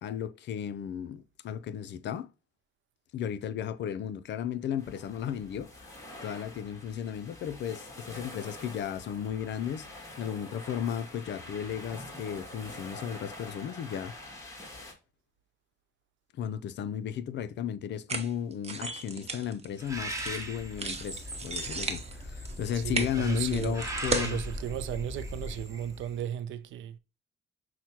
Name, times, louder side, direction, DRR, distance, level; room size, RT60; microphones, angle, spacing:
voice 1, 0.0-2.3 3.1-5.9 6.2-9.9 10.2-14.1 16.4-24.4, left 9 dB, 65° left, 0.5 m, -34 dB
sound 1, 4.8-14.9, left 1 dB, 15° left, 1.4 m, -46 dB
sound 2, 18.1-20.4 20.8-24.3, right 4 dB, 30° right, 0.7 m, -35 dB
Bird, 19.8-26.2, equal, 15° right, 1.0 m, -39 dB
voice 2, 22.7-23.8 24.1-27.0, right 10 dB, 75° right, 0.4 m, -35 dB
5.9 x 2.2 x 2.8 m
cardioid pair, 90°, 20 cm